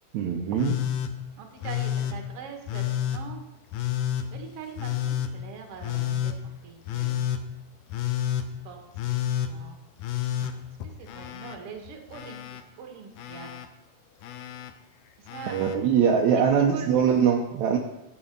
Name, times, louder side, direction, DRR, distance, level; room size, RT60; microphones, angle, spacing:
voice 1, 0.1-0.8 15.5-17.8, right 7 dB, 75° right, 1 dB, 2.0 m, -22 dB
Telephone, 0.6-1.1 1.6-2.2 2.7-3.2 3.7-4.3 4.8-5.3 5.8-6.4 6.9-7.4 7.9-8.5 9.0-9.5 10.0-11.6 11.9-12.6 13.2-13.7 14.2-14.7 15.3-15.8 17.0-17.1, left 11 dB, 85° left, 2.3 m, -29 dB
voice 2, 1.3-3.4 4.3-6.3 6.6-7.2 8.6-9.8 11.0-12.4 12.8-13.5 15.3-15.9 16.3-16.9, right 6 dB, 55° right, 3 dB, 2.2 m, -42 dB
11.5 x 6.8 x 5.2 m, 0.93 s
omnidirectional pair, 3.6 m